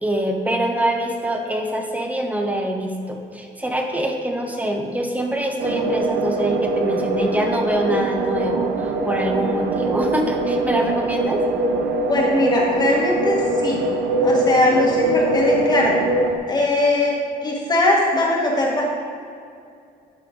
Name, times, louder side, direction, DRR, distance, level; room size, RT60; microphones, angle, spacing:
voice 1, 0.0-11.4, right 1 dB, 10° right, 2 dB, 1.0 m, -24 dB
sound 1, 5.6-16.4, right 2 dB, 75° right, 0.8 m, -22 dB
voice 2, 12.1-13.8 14.2-16.0 16.5-17.1 17.4-18.8, left 2 dB, 25° left, -2 dB, 1.6 m, -20 dB
12.0 x 4.4 x 3.9 m, 2.3 s
cardioid pair, 110°, 17 cm